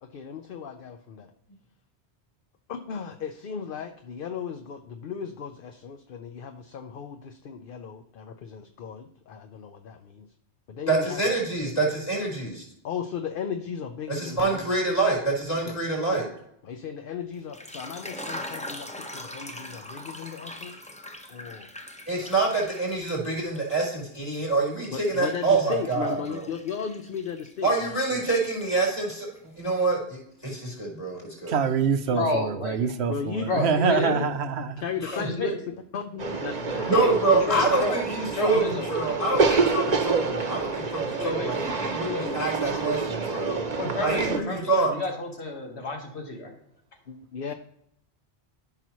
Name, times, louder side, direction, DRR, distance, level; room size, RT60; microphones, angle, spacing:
voice 1, 0.0-1.3 2.7-10.3 10.7-11.2 12.8-14.6 15.6-15.8 16.0-16.2 16.6-20.7 21.3-21.7 24.9-28.3 33.1-34.3 34.8-36.9 37.3-37.5 47.1-47.5, left 6 dB, 60° left, 0.8 m, -36 dB
voice 2, 10.9-12.6 14.1-16.3 22.1-26.4 27.6-29.3 29.6-31.6 32.0-32.1 35.0-35.3 36.9-43.6 44.0-44.9, right 3 dB, 30° left, 4.3 m, -26 dB
sound 1, 17.4-23.8 24.1-28.3 28.6-29.4, left 1 dB, 10° left, 0.7 m, -42 dB
voice 3, 31.5-34.8, right 6 dB, 75° right, 0.9 m, -25 dB
voice 4, 32.1-33.0 33.5-34.3 35.1-35.6 36.9-37.1 37.5-38.0 38.3-38.9 41.2-41.5 42.1-42.4 43.8-46.5, left 2 dB, 80° left, 1.9 m, -30 dB
sound 2, 36.2-44.4, right 4 dB, 40° right, 0.9 m, -28 dB
13.5 x 5.7 x 3.0 m
omnidirectional pair, 1.1 m